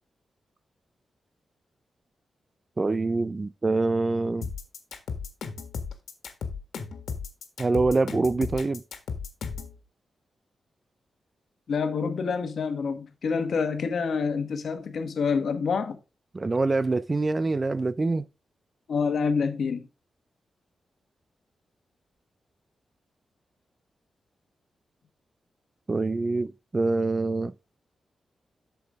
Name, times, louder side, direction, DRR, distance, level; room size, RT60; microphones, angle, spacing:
voice 1, 2.8-4.5 7.6-8.8 16.3-18.2 25.9-27.5, right 3 dB, 25° right, 0.4 m, -25 dB
sound 1, 4.4-9.7, left 5 dB, 85° left, 1.6 m, -35 dB
voice 2, 11.7-16.0 18.9-19.9, left 5 dB, 65° left, 1.3 m, -27 dB
8.0 x 7.0 x 3.5 m
wide cardioid pair, 130°, 0 cm